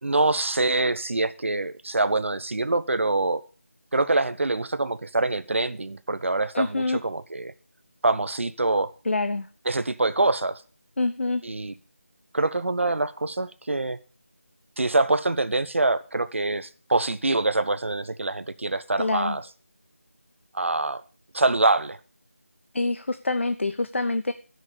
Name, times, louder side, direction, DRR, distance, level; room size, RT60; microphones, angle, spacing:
voice 1, 0.0-3.4 3.9-7.5 8.0-8.9 9.7-10.6 11.4-11.7 12.3-14.0 14.8-19.4 20.5-21.0 21.3-22.0, right 2 dB, 60° right, 14 dB, 0.9 m, -25 dB
voice 2, 6.5-7.0 9.0-9.5 11.0-11.4 19.0-19.4 22.7-24.3, left 2 dB, 60° left, 11 dB, 0.6 m, -26 dB
14.0 x 6.4 x 5.1 m, 0.37 s
figure-of-eight pair, 170°, 8 cm